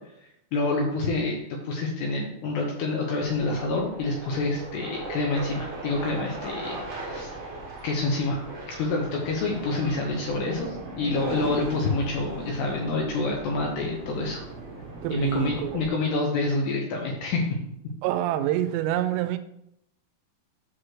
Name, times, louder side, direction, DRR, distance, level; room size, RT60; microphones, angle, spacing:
voice 1, 0.5-7.3 7.8-8.4 8.7-14.5 15.1-17.5, left 3 dB, 80° left, 2.6 m, -27 dB
sound 1, 3.2-15.9, right 2 dB, 60° right, 1.6 m, -38 dB
voice 2, 15.0-15.8 18.0-19.4, right 12 dB, 90° right, 3.2 m, -26 dB
7.9 x 3.1 x 6.3 m
omnidirectional pair, 5.8 m